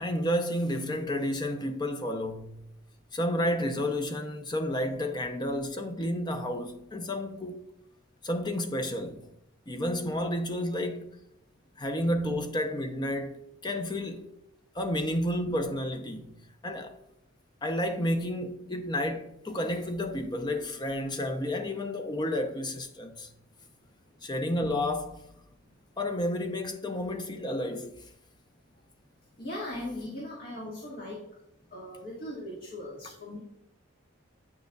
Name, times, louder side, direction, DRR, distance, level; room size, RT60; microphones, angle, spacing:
voice 1, 0.0-2.6 3.1-7.6 8.2-9.2 9.7-11.1 11.8-14.3 14.7-16.4 16.6-17.0 17.6-23.3 24.2-25.2 26.0-28.0, left 1 dB, 20° left, 0.6 m, -31 dB
voice 2, 29.4-31.2 31.7-33.4, left 1 dB, 45° left, 1.6 m, -39 dB
8.7 x 6.6 x 2.3 m
head